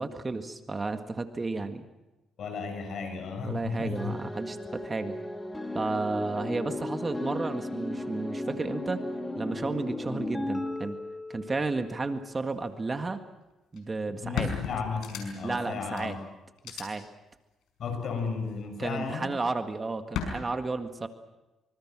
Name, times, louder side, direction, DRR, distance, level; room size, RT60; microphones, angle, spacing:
voice 1, 0.0-1.9 3.4-5.2 5.7-9.0 9.4-11.0 11.3-13.2 13.7-14.5 15.4-16.2 16.6-17.1 18.8-21.1, right 3 dB, 25° right, 7 dB, 1.8 m, -32 dB
voice 2, 2.4-4.1 14.1-16.2 17.8-19.3, left 5 dB, 65° left, 6 dB, 7.0 m, -34 dB
sound 1, 3.9-12.4, left 1 dB, 15° left, 2.5 m, -35 dB
sound 2, 13.8-13.9 14.3-15.6 16.0-16.1 16.6-16.8 18.2-18.6 20.1-20.3, left 7 dB, 85° left, 5.3 m, -34 dB
25.5 x 25.0 x 6.2 m, 1.0 s
cardioid pair, 90°, 0 cm